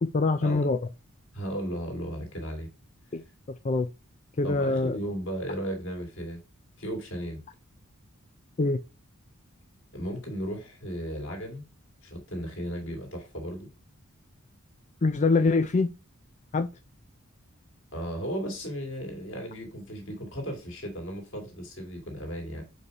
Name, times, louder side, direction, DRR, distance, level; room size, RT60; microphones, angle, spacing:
voice 1, 0.0-0.8 3.1-3.2 3.6-3.9 4.4-5.0 8.6-8.8 15.0-15.9 16.5-16.7, left 3 dB, 30° left, 0.4 m, -24 dB
voice 2, 1.3-2.7 4.4-6.4 6.8-7.4 9.9-11.6 12.0-13.7 17.9-22.6, equal, 55° left, 2.7 m, -35 dB
5.3 x 4.8 x 5.4 m
head